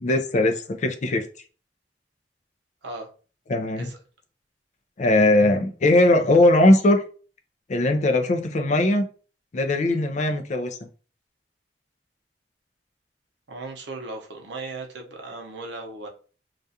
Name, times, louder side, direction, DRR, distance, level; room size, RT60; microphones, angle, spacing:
voice 1, 0.0-1.2 3.5-3.9 5.0-7.0 7.7-9.1 9.5-10.8, left 1 dB, 40° left, 5 dB, 0.4 m, -19 dB
voice 2, 13.5-16.1, right 3 dB, 75° right, 2 dB, 0.7 m, -37 dB
2.4 x 2.3 x 2.7 m, 0.38 s
head